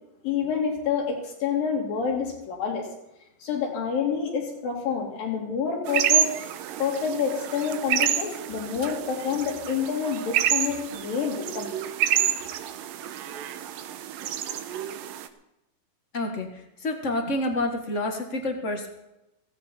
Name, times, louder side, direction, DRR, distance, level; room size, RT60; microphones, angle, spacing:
voice 1, 0.2-2.9 3.4-6.3 6.8-11.7, left 6 dB, 85° left, -1 dB, 4.8 m, -28 dB
sound 1, 5.9-15.3, right 10 dB, 80° right, 2.6 m, -28 dB
voice 2, 16.1-16.5 16.8-18.9, left 1 dB, 65° left, 3 dB, 0.7 m, -28 dB
16.5 x 15.5 x 4.3 m, 0.90 s
omnidirectional pair, 4.0 m